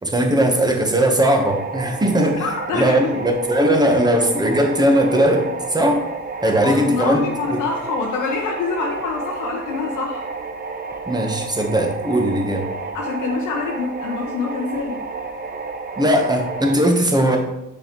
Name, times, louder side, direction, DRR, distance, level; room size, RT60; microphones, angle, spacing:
voice 1, 0.0-2.5 2.7-6.0 6.4-7.2 11.1-12.6 16.0-17.4, right 1 dB, 15° right, 3 dB, 1.2 m, -18 dB
sound 1, 1.4-16.8, right 4 dB, 30° right, 0.8 m, -31 dB
voice 2, 2.4-3.1 6.6-10.2 12.9-15.0, left 4 dB, 85° left, -1 dB, 0.9 m, -26 dB
6.7 x 5.3 x 3.1 m, 0.92 s
cardioid pair, 90°, 30 cm